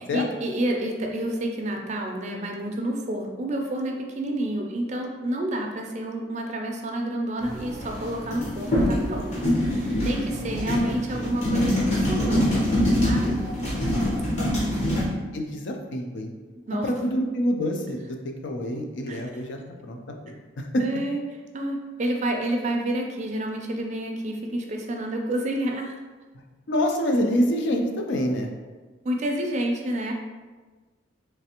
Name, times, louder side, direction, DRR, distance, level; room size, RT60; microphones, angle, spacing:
voice 1, 0.1-12.6 13.0-13.4 14.6-15.2 16.7-16.9 19.1-19.4 20.8-21.2 21.5-25.9 29.0-30.1, right 1 dB, 35° right, 2 dB, 0.4 m, -29 dB
sound 1, 7.4-15.1, equal, 35° left, 0.9 m, -25 dB
voice 2, 10.4-11.1 14.3-14.6 15.3-16.3 16.7-20.0 20.2-21.0 26.7-28.5, equal, 65° left, 3 dB, 0.4 m, -27 dB
3.3 x 3.2 x 2.9 m, 1.3 s
head